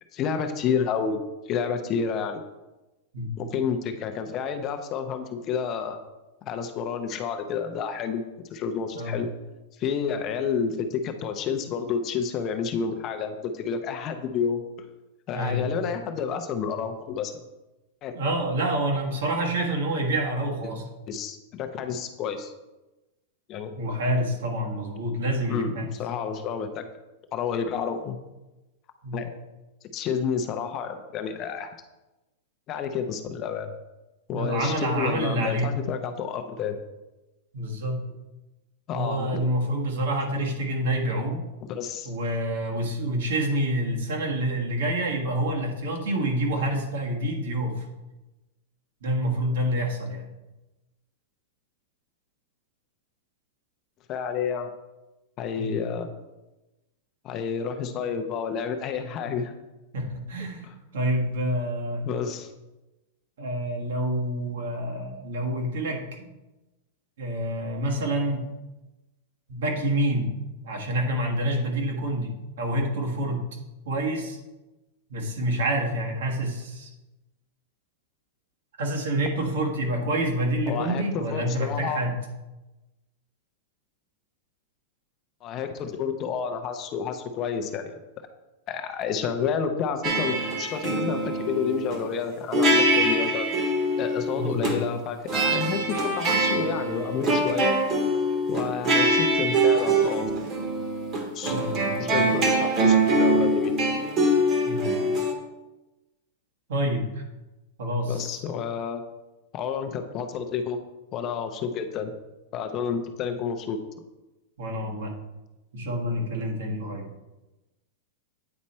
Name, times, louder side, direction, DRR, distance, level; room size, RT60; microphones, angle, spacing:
voice 1, 0.1-2.4 3.4-6.0 6.4-8.2 8.5-9.3 9.8-14.6 15.3-17.3 18.0-18.2 20.6-20.7 21.1-22.5 23.5-23.7 25.5-26.9 27.3-28.2 29.1-29.3 29.9-31.7 32.7-33.7 34.3-36.8 38.9-39.5 41.7-42.1 54.1-54.7 55.4-56.1 57.2-59.5 60.6-60.7 62.0-62.5 80.7-82.0 85.4-87.9 88.7-93.5 94.0-97.7 98.5-100.3 101.3-101.6 102.0-103.7 108.1-109.0 109.5-110.8 111.1-112.1 112.5-113.8, left 6 dB, 25° left, 6 dB, 0.5 m, -30 dB
voice 2, 15.3-15.6 18.1-20.9 23.8-25.9 29.0-29.2 34.3-35.8 37.5-38.1 38.9-41.4 42.0-47.8 49.0-50.3 55.6-55.8 59.9-62.0 63.4-66.3 67.2-68.5 69.5-70.3 70.6-73.5 73.8-74.4 75.1-76.9 78.8-82.1 94.3-94.8 101.5-102.4 104.6-104.9 106.7-107.2 107.8-108.4 114.6-115.1 115.7-117.1, right 1 dB, 75° right, 1 dB, 1.5 m, -27 dB
sound 1, 90.0-92.0 92.5-94.8 95.3-105.3, right 1 dB, 25° right, 1.0 m, -23 dB
8.7 x 4.3 x 4.2 m, 1.1 s
supercardioid pair, 175°, 0 cm